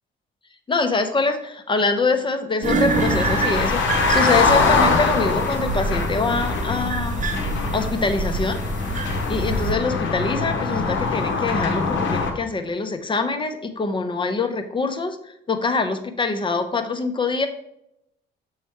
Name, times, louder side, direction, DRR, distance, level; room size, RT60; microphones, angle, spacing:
voice 1, 0.7-7.3 7.7-8.6 9.3-15.2 15.5-17.5, left 3 dB, 25° left, 7 dB, 0.8 m, -24 dB
sound 1, 2.6-9.7, right 3 dB, 40° right, 1.0 m, -26 dB
sound 2, 2.9-12.3, left 4 dB, 75° left, 1.1 m, -23 dB
6.8 x 3.2 x 4.5 m, 0.78 s
cardioid pair, 90°, 20 cm